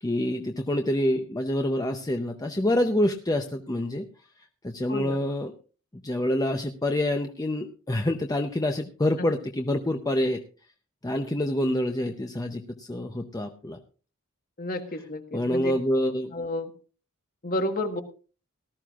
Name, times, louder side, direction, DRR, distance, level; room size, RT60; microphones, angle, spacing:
voice 1, 0.0-4.1 4.6-5.5 6.0-10.4 11.0-13.8 15.3-16.3, left 1 dB, 15° left, 5 dB, 0.6 m, -27 dB
voice 2, 4.9-5.2 14.6-15.7 16.3-16.7 17.4-18.0, left 1 dB, 40° left, 6 dB, 1.4 m, -31 dB
18.5 x 13.0 x 2.4 m, 0.36 s
head